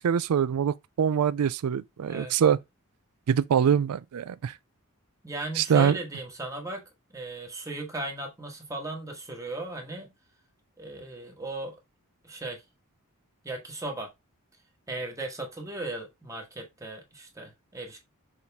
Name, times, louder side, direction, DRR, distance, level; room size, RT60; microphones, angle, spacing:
voice 1, 0.0-2.6 3.3-4.6 5.5-6.0, right 8 dB, 80° right, 0.4 m, -24 dB
voice 2, 5.2-6.8 7.1-10.1 10.8-11.8 12.2-12.6 13.4-14.1 14.9-18.0, right 2 dB, 15° right, 1.3 m, -36 dB
6.6 x 4.1 x 3.5 m
head